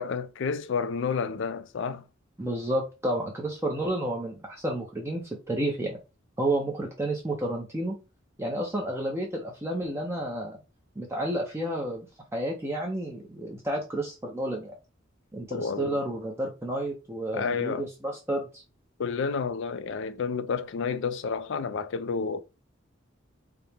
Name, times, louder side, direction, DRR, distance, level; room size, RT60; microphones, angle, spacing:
voice 1, 0.0-2.1 15.5-16.1 17.3-17.9 19.0-22.4, left 5 dB, 65° left, 0.4 m, -30 dB
voice 2, 2.4-6.0 6.4-8.0 8.4-10.6 11.0-12.1 12.3-14.7 15.3-18.6, right 1 dB, 15° right, 0.5 m, -31 dB
4.8 x 2.1 x 3.3 m
head